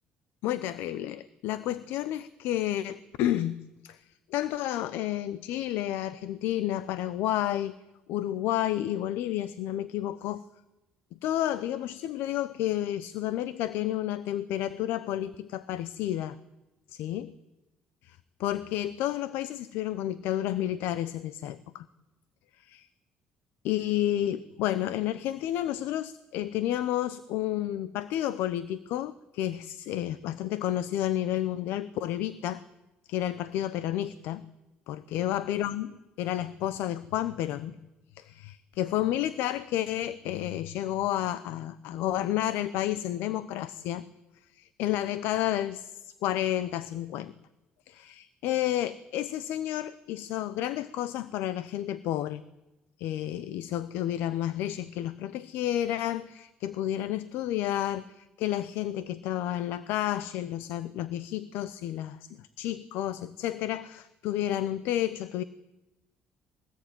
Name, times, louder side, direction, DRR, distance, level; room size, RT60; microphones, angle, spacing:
voice 1, 0.4-4.0 4.3-7.8 8.1-10.4 11.2-16.4 16.9-17.3 18.0-21.9 22.7-22.8 23.6-32.6 33.1-34.5 34.9-37.8 38.1-44.0 44.5-47.3 47.9-52.4 53.0-65.4, left 12 dB, 85° left, 16 dB, 0.8 m, -31 dB
22.0 x 18.5 x 9.2 m, 1.0 s
cardioid pair, 110°, 4 cm